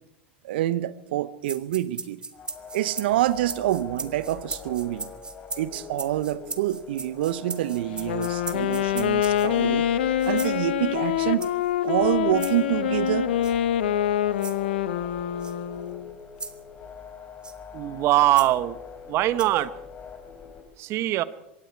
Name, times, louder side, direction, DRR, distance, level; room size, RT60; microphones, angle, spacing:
voice 1, 0.4-2.2 2.7-5.1 5.6-9.9 10.2-11.5 11.8-13.3, right 14 dB, 70° right, 1.0 m, -27 dB
sound 1, 1.4-9.6 10.2-10.6 11.4-11.7 12.4-12.6 13.4-13.6 14.4-14.6 15.4-15.5 16.4-16.6 17.4-17.6 18.3-18.5 19.4-19.6, right 3 dB, 15° right, 1.7 m, -37 dB
sound 2, 2.3-20.6, left 6 dB, 35° left, 4.2 m, -43 dB
Wind instrument woodwind instrument, 8.0-16.1, left 10 dB, 75° left, 1.3 m, -25 dB
voice 2, 17.7-18.8 19.1-19.7 20.8-21.2, right 15 dB, 50° right, 1.2 m, -22 dB
25.5 x 22.5 x 4.7 m
hypercardioid pair, 80°, 6 cm